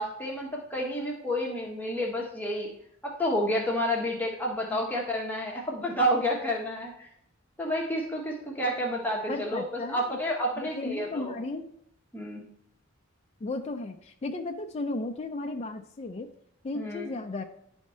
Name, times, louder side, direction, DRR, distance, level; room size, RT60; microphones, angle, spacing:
voice 1, 0.0-2.7 3.0-7.1 7.6-11.4 12.1-12.4 16.7-17.1, equal, 10° left, -2 dB, 1.0 m, -30 dB
voice 2, 9.3-10.2 10.6-11.7 13.4-16.3 16.6-17.4, left 2 dB, 30° left, 4 dB, 0.4 m, -35 dB
10.5 x 3.6 x 4.2 m, 0.72 s
head